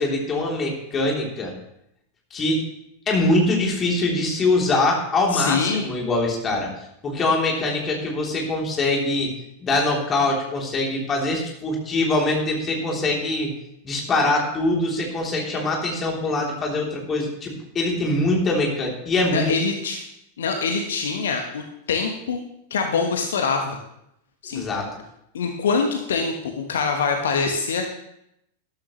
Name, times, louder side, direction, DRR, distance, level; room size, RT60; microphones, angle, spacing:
voice 1, 0.0-1.5 2.3-2.6 3.1-6.7 7.0-9.3 9.6-13.5 13.8-19.5 24.5-24.9, left 2 dB, 25° left, -1 dB, 3.2 m, -23 dB
voice 2, 5.3-5.9 19.3-20.0 20.4-21.6 21.9-22.4 22.7-23.8 24.4-24.6 25.3-27.9, left 5 dB, 65° left, 4 dB, 1.2 m, -24 dB
13.0 x 12.5 x 3.2 m, 0.79 s
figure-of-eight pair, 90°, 0 cm